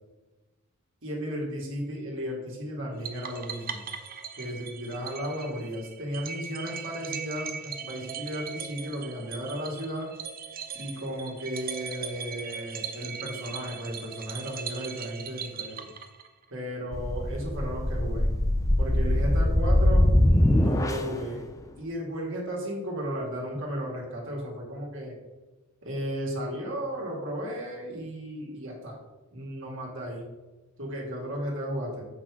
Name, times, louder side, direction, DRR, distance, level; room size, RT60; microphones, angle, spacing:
voice 1, 1.0-3.8 4.3-10.1 10.7-15.8 16.5-18.3 18.8-21.4 21.8-25.1 25.8-29.0 29.3-30.3 30.8-32.0, equal, 60° right, -2 dB, 2.0 m, -34 dB
sound 1, 3.0-16.5, right 6 dB, 40° right, 0.7 m, -39 dB
sound 2, 16.9-21.2, left 1 dB, 15° left, 0.5 m, -23 dB
7.7 x 6.1 x 4.8 m, 1.2 s
head